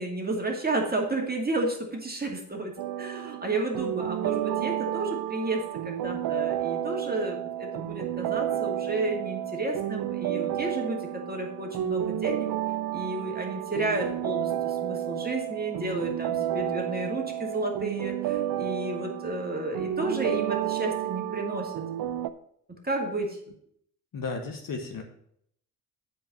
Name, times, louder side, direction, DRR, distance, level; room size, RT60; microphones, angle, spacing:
voice 1, 0.0-12.5 12.9-21.7 22.8-23.4, right 2 dB, 20° right, 1 dB, 2.3 m, -32 dB
sound 1, 2.8-22.3, right 12 dB, 50° right, 0.6 m, -31 dB
voice 2, 24.1-25.0, left 4 dB, 45° left, 4 dB, 1.4 m, -34 dB
7.7 x 5.0 x 6.4 m, 0.69 s
hypercardioid pair, 50°, 47 cm